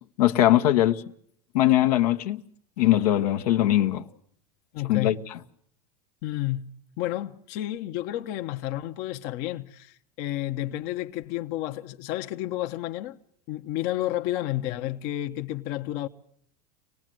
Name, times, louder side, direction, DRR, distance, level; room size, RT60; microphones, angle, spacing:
voice 1, 0.2-1.0 1.5-2.4 2.8-4.1 4.9-5.2, left 14 dB, 80° left, 1.1 m, -21 dB
voice 2, 4.7-5.2 6.2-6.6 7.0-13.2 13.5-16.1, left 14 dB, 55° left, 1.0 m, -31 dB
25.0 x 18.5 x 7.7 m
supercardioid pair, 120°, 19 cm